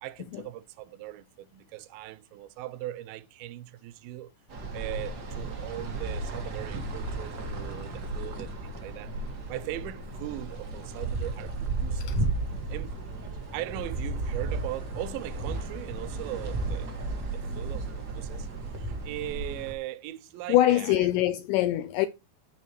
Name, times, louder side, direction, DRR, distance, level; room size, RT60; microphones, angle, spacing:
voice 1, 0.0-4.3 4.7-9.1 9.5-12.2 12.7-12.9 13.5-17.9 18.1-18.5 18.8-21.1, right 14 dB, 90° right, 2.4 m, -39 dB
sound 1, 4.5-19.7, right 2 dB, 55° right, 1.1 m, -34 dB
voice 2, 20.5-22.1, left 14 dB, 85° left, 1.9 m, -24 dB
9.4 x 6.4 x 3.0 m
omnidirectional pair, 4.2 m